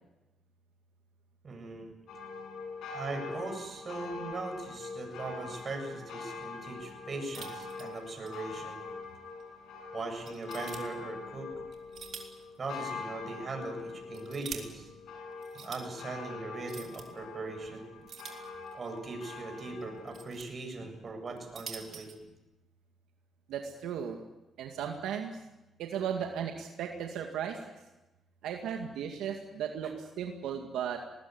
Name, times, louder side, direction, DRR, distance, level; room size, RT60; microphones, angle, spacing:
voice 1, 1.4-1.9 2.9-8.8 9.9-11.5 12.6-14.9 15.5-17.9 18.7-22.1, right 3 dB, 40° right, 4 dB, 7.8 m, -40 dB
sound 1, 2.1-20.3, left 4 dB, 80° left, 7.2 m, -43 dB
sound 2, 7.3-8.4 8.7-8.8 9.4-9.5 10.2-10.8 11.7-12.4 12.7-12.8 13.8-14.6 15.4-15.8 16.6-17.0 18.1-18.9 19.8-20.5 21.3-22.2, right 7 dB, 60° right, 4.0 m, -45 dB
voice 2, 23.5-24.2 24.6-25.3 25.8-27.7 28.4-31.0, right 8 dB, 85° right, 3 dB, 2.2 m, -36 dB
20.5 x 20.0 x 9.6 m, 1.0 s
cardioid pair, 90°, 0 cm